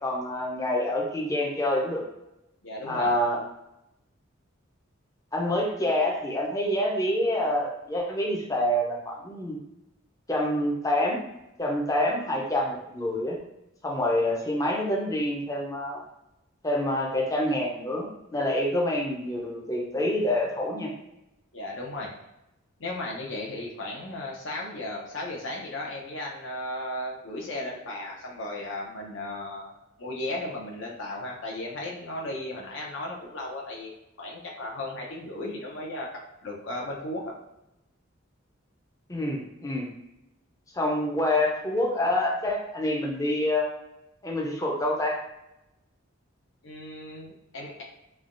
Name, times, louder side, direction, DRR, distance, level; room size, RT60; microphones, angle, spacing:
voice 1, 0.0-2.0 2.9-3.4 5.3-9.6 10.3-11.2 11.6-13.4 13.8-16.0 16.6-20.9 39.1-39.9 40.7-43.7 44.2-45.2, left 1 dB, 15° left, -1 dB, 0.5 m, -27 dB
voice 2, 2.6-3.1 21.5-22.1 22.8-29.7 30.0-33.9 34.2-36.1 36.4-37.3 46.6-47.8, left 1 dB, 65° left, -2 dB, 0.7 m, -35 dB
3.3 x 2.2 x 2.5 m, 0.91 s
head